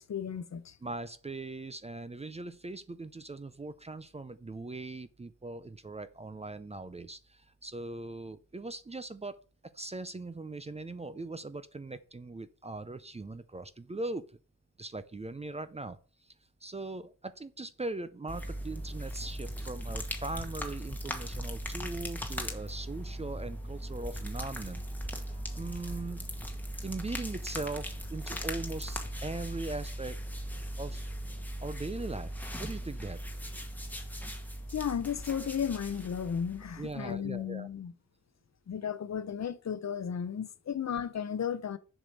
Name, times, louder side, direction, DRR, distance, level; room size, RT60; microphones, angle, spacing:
voice 1, 0.0-0.8 34.7-37.9 38.7-41.8, left 8 dB, 55° left, 0.8 m, -34 dB
voice 2, 0.8-9.4 9.7-14.3 14.8-16.3 16.6-24.8 25.1-26.3 26.8-30.2 30.8-31.1 31.6-33.2 36.8-37.7, right 2 dB, 20° right, 0.5 m, -40 dB
sound 1, 18.3-37.2, equal, 5° left, 1.3 m, -39 dB
7.3 x 5.0 x 6.8 m
wide cardioid pair, 145°, 31 cm